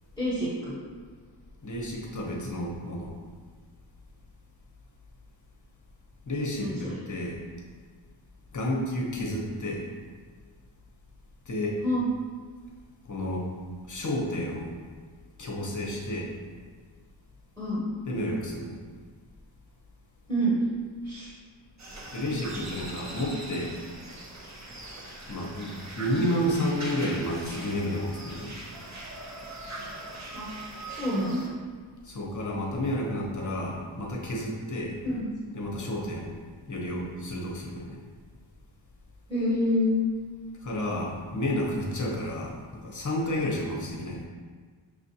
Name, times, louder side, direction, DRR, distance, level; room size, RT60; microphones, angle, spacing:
voice 1, 0.2-0.8 6.5-7.0 11.8-12.0 17.6-17.8 20.3-20.6 21.0-21.3 30.3-30.5 31.0-31.4 35.0-35.3 39.3-40.1, left 1 dB, 5° left, -9 dB, 1.1 m, -27 dB
voice 2, 1.6-3.1 6.3-7.4 8.5-9.9 11.5-11.8 13.1-13.5 13.9-14.7 15.4-16.3 18.1-18.7 22.1-23.7 25.3-28.5 32.0-35.0 35.5-36.3 36.7-38.0 40.6-44.3, left 1 dB, 40° left, -1 dB, 0.8 m, -31 dB
sound 1, 21.8-31.5, right 2 dB, 35° right, 0.7 m, -41 dB
6.2 x 2.5 x 2.7 m, 1.5 s
wide cardioid pair, 85°, 47 cm